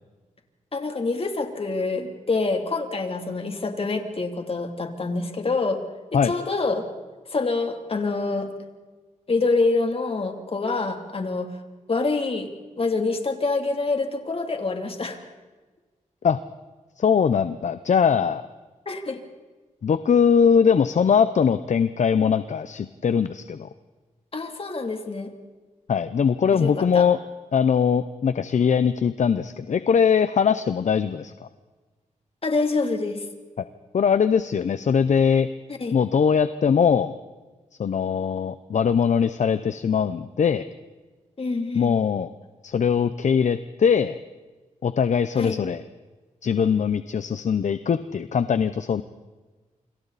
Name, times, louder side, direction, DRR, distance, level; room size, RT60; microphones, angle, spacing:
voice 1, 0.7-5.8 6.2-6.9 7.3-8.5 9.3-11.5 11.9-12.5 12.8-15.2 18.9-19.2 24.3-25.3 26.5-27.1 32.4-33.2 35.8-36.0 41.4-42.0 45.3-45.6, left 3 dB, 45° left, 5 dB, 3.1 m, -26 dB
voice 2, 17.0-18.4 19.8-23.7 25.9-27.2 27.5-31.5 33.6-33.7 33.9-35.5 35.9-37.2 37.8-40.6 41.7-42.3 42.6-44.2 44.8-45.8 46.4-49.0, left 7 dB, 65° left, 12 dB, 0.8 m, -21 dB
28.0 x 26.5 x 4.2 m, 1.3 s
wide cardioid pair, 85°, 14 cm